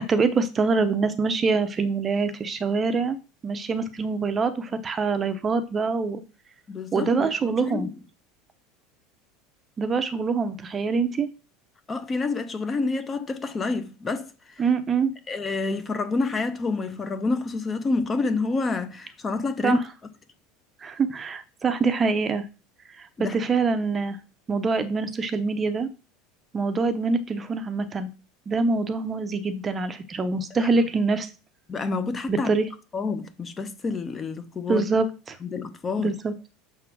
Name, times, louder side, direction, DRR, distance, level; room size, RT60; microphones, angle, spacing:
voice 1, 0.0-3.2 3.4-6.2 6.9-7.9 9.8-11.3 14.6-15.1 19.6-19.8 20.8-22.4 23.0-24.2 24.5-25.9 26.5-28.1 28.5-31.3 32.3-32.7 34.7-35.4 36.0-36.3, right 4 dB, 20° right, 0.7 m, -25 dB
voice 2, 6.7-7.9 11.9-14.6 15.3-19.8 23.2-23.4 30.6-30.7 31.7-32.5 32.9-34.8 35.4-36.2, left 3 dB, 20° left, 0.6 m, -28 dB
6.9 x 3.8 x 6.0 m
supercardioid pair, 155°, 0 cm